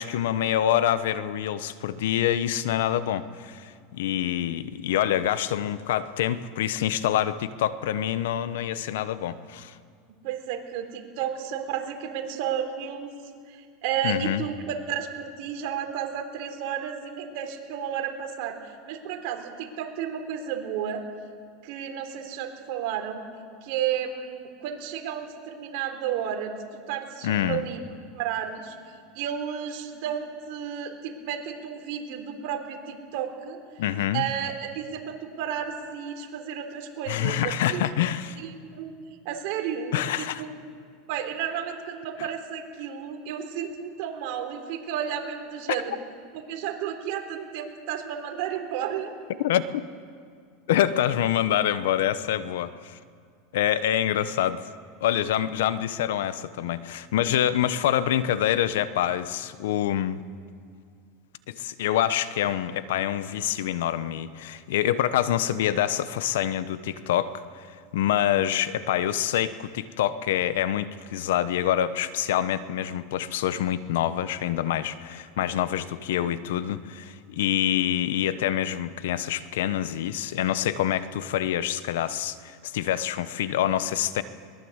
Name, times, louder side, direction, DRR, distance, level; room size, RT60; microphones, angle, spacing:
voice 1, 0.0-9.8 14.0-14.4 27.2-27.6 33.8-34.2 37.1-38.4 39.9-40.4 49.4-49.6 50.7-53.0 53.5-54.6 55.0-60.2 61.5-67.7 67.9-84.2, left 11 dB, 80° left, 14 dB, 1.0 m, -26 dB
voice 2, 10.2-13.1 13.5-21.0 21.6-23.2 23.6-27.8 28.1-28.8 29.1-33.6 34.1-38.1 38.4-38.9 39.3-40.5 41.1-46.0 46.5-49.1, right 9 dB, 60° right, 4 dB, 3.7 m, -32 dB
22.0 x 21.0 x 8.2 m, 2.2 s
supercardioid pair, 130°, 0 cm